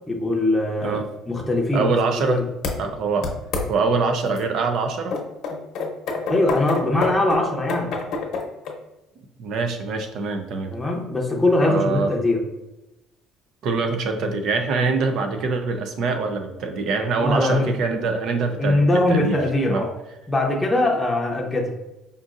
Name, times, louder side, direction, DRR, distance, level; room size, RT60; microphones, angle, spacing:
voice 1, 0.1-1.0 1.3-1.9 2.3-2.4 6.3-8.0 10.7-12.4 17.2-17.7 18.6-19.9 20.3-21.7, left 2 dB, 5° left, -2 dB, 0.7 m, -21 dB
voice 2, 1.7-2.4 2.8-3.3 3.7-5.2 9.4-10.7 11.6-12.1 13.6-18.8 19.1-19.8, right 4 dB, 60° right, 6 dB, 0.5 m, -24 dB
sound 1, 2.6-2.7 3.2-3.7 4.4-4.5 5.1-8.7, left 4 dB, 60° left, 0.8 m, -26 dB
5.0 x 2.6 x 2.5 m, 0.96 s
cardioid pair, 135°, 0 cm